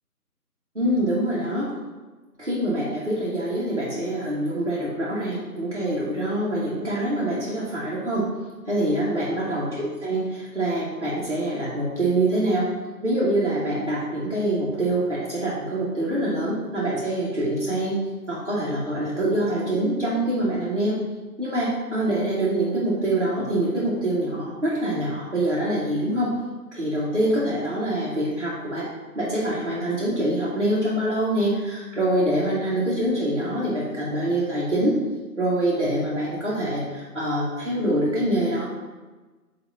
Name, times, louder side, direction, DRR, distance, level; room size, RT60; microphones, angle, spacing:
voice 1, 0.7-1.7 2.4-8.3 8.7-12.7 13.0-21.0 21.4-26.3 26.7-28.9 29.1-35.0 35.4-38.7, right 1 dB, 45° right, -10 dB, 1.7 m, -25 dB
8.4 x 3.4 x 4.2 m, 1.2 s
figure-of-eight pair, 180°, 47 cm